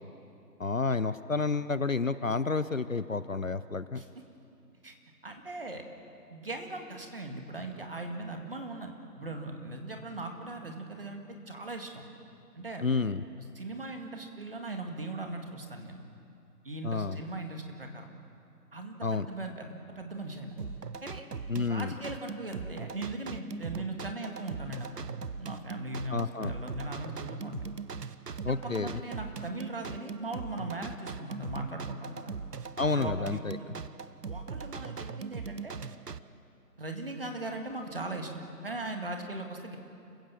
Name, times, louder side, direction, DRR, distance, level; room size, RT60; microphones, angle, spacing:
voice 1, 0.6-4.0 12.8-13.2 16.8-17.2 19.0-19.3 21.5-21.9 26.1-26.6 28.4-29.0 32.8-33.6, left 4 dB, 55° left, 14 dB, 0.7 m, -30 dB
voice 2, 5.2-5.8 6.3-8.9 9.2-12.0 12.6-12.8 13.6-16.0 16.6-18.1 18.7-20.6 21.0-21.2 21.7-27.6 28.5-32.3 32.9-33.7 34.2-35.7 36.8-39.8, right 2 dB, 35° right, 4 dB, 2.0 m, -39 dB
sound 1, 20.6-36.2, right 5 dB, 75° right, 1.0 m, -40 dB
29.0 x 16.0 x 7.5 m, 2.6 s
figure-of-eight pair, 175°, 49 cm